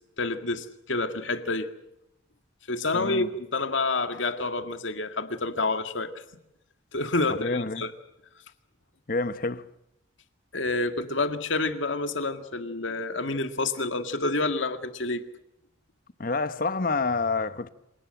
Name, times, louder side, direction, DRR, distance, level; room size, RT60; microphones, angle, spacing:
voice 1, 0.2-1.7 2.7-6.1 6.9-7.9 10.5-15.2, left 3 dB, 75° left, 1.9 m, -28 dB
voice 2, 2.9-3.3 7.3-7.8 9.1-9.7 16.2-17.7, left 3 dB, 45° left, 1.0 m, -28 dB
26.5 x 18.5 x 7.9 m
head